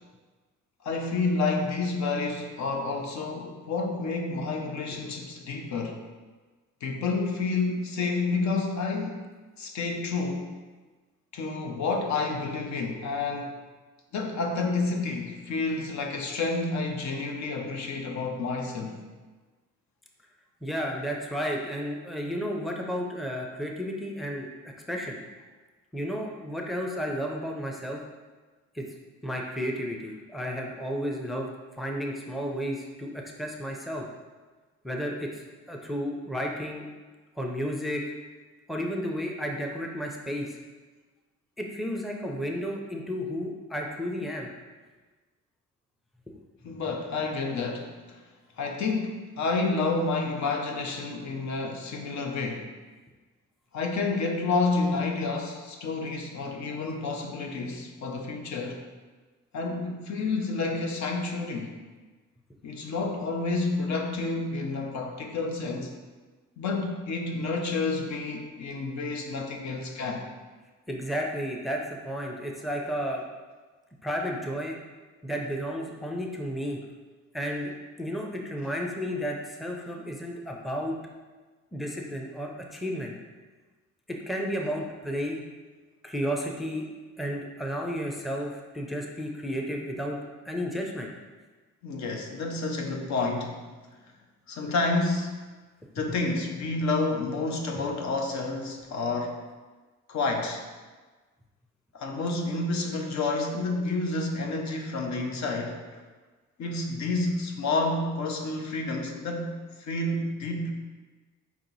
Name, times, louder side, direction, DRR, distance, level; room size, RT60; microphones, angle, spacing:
voice 1, 0.8-6.0 6.8-9.2 9.6-10.5 11.3-13.6 14.1-19.0 46.6-48.2 48.6-52.7 53.7-58.8 59.5-61.8 62.6-65.9 66.6-70.2 91.8-93.7 94.5-95.4 95.9-99.4 100.1-100.6 101.9-106.0 106.6-110.7, left 3 dB, 65° left, 3 dB, 0.7 m, -29 dB
voice 2, 20.6-24.5 24.9-25.2 25.9-28.0 28.8-28.9 29.2-31.5 31.8-34.0 34.8-35.3 35.7-36.9 37.4-38.0 38.7-40.5 41.6-44.5 70.9-73.2 74.0-74.8 75.2-76.8 77.3-77.7 78.0-81.0 81.7-83.1 84.1-85.4 86.0-86.9 87.2-90.2 90.4-91.1, equal, ahead, 0 dB, 0.5 m, -32 dB
4.6 x 2.9 x 3.9 m, 1.3 s
cardioid pair, 90°, 30 cm